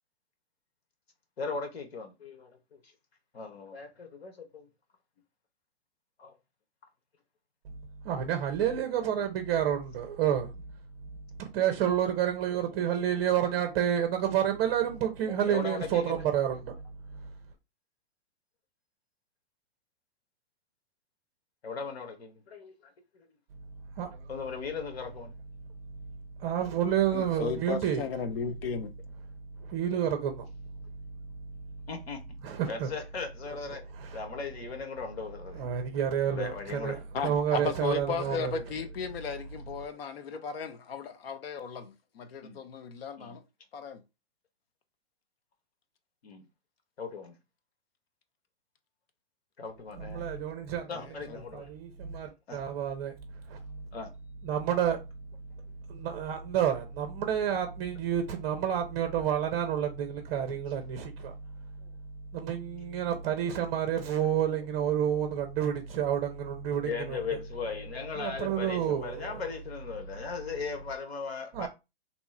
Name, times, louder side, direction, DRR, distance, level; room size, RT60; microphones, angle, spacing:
voice 1, 1.4-2.8 3.3-4.7 6.2-6.3 15.5-16.2 21.6-23.3 24.3-25.3 27.6-27.7 31.9-32.2 32.7-33.8 34.1-35.6 36.3-37.0 37.5-37.6 38.2-38.4 42.4-42.6 43.2-43.4 46.2-46.4 47.0-47.3 49.6-50.2 50.9-51.7 52.5-52.6 53.9-54.1 66.8-71.7, left 5 dB, 90° left, 1.1 m, -38 dB
voice 2, 8.0-10.5 11.4-16.8 23.9-24.2 26.4-28.0 29.6-30.4 32.4-32.9 34.0-34.2 35.5-38.6 50.0-50.9 51.5-53.1 53.5-53.8 54.4-55.0 55.9-61.3 62.3-67.2 68.2-69.3 71.5-71.7, right 9 dB, 30° right, 0.6 m, -29 dB
voice 3, 27.1-28.9 37.1-43.4 43.7-44.0 50.9-51.4, left 6 dB, 70° left, 0.8 m, -35 dB
2.9 x 2.3 x 4.1 m
hypercardioid pair, 145°, 30 cm